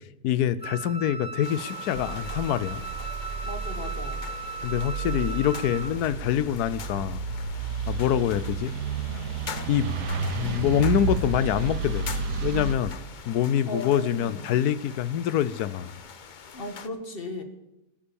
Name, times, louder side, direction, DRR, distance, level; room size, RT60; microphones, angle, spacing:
voice 1, 0.2-2.8 4.6-7.2 7.9-8.7 9.7-12.1 12.4-13.0 13.3-15.9, left 10 dB, 75° left, 16 dB, 1.1 m, -25 dB
Wind instrument woodwind instrument, 0.6-6.0, right 4 dB, 10° left, 0.6 m, -38 dB
sound 1, 1.4-16.9, left 6 dB, 55° left, 0.5 m, -43 dB
sound 2, 1.9-12.7, right 5 dB, 75° right, 1.7 m, -32 dB
voice 2, 3.4-4.3 13.7-14.4 16.5-17.4, left 1 dB, 35° left, 6 dB, 1.6 m, -36 dB
14.5 x 9.9 x 7.0 m, 0.94 s
omnidirectional pair, 1.8 m